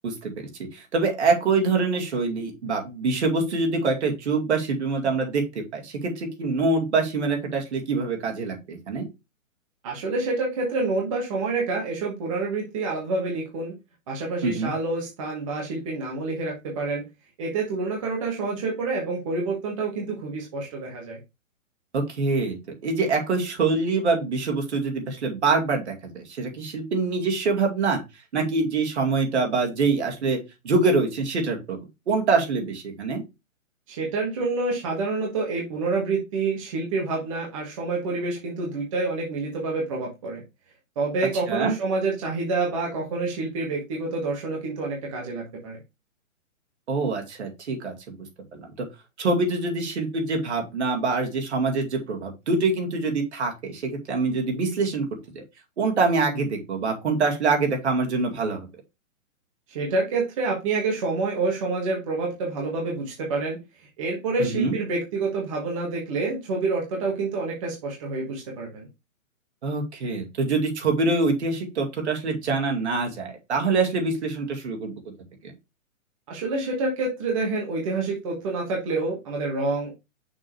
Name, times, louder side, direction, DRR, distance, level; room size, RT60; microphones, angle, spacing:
voice 1, 0.0-9.1 14.4-14.7 21.9-22.6 22.8-28.0 28.3-30.4 30.6-31.8 32.1-33.2 41.5-41.7 46.9-48.2 48.5-48.9 49.2-55.1 55.3-55.4 55.8-58.7 64.4-64.8 69.6-75.1 75.4-75.5, right 3 dB, 55° right, 2 dB, 2.3 m, -25 dB
voice 2, 9.8-13.7 14.1-17.1 17.4-21.2 33.9-40.4 40.9-45.8 59.7-68.9 76.3-79.9, right 3 dB, 25° right, -2 dB, 1.3 m, -28 dB
6.3 x 3.7 x 4.5 m, 0.24 s
hypercardioid pair, 175°, 40 cm